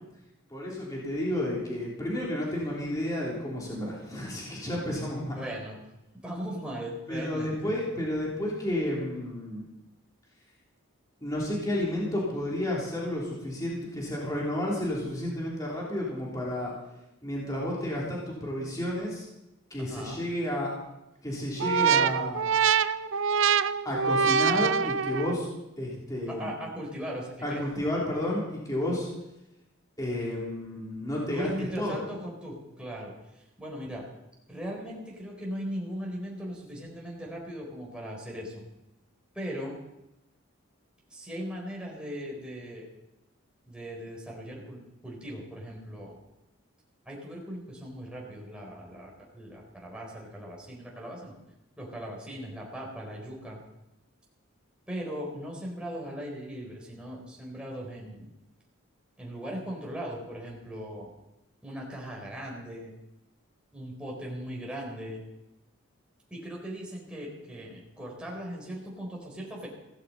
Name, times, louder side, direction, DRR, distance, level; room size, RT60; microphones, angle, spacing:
voice 1, 0.5-5.3 7.1-9.7 11.2-16.7 17.2-19.2 19.7-20.7 21.2-22.4 23.8-25.5 25.8-26.6 27.4-29.1 30.0-31.5 31.8-32.0, left 1 dB, 15° left, -5 dB, 3.3 m, -31 dB
voice 2, 5.3-5.8 6.2-7.7 19.8-20.2 26.3-27.8 31.3-34.1 34.5-38.7 39.3-39.7 41.1-42.9 43.7-46.2 47.1-51.4 51.8-53.6 54.9-58.3 59.2-61.1 61.6-62.9 63.7-65.2 66.3-69.7, equal, 5° right, -2 dB, 3.9 m, -38 dB
Wah Wah, 21.6-25.5, right 6 dB, 65° right, 0.5 m, -25 dB
16.5 x 15.5 x 4.3 m, 0.93 s
head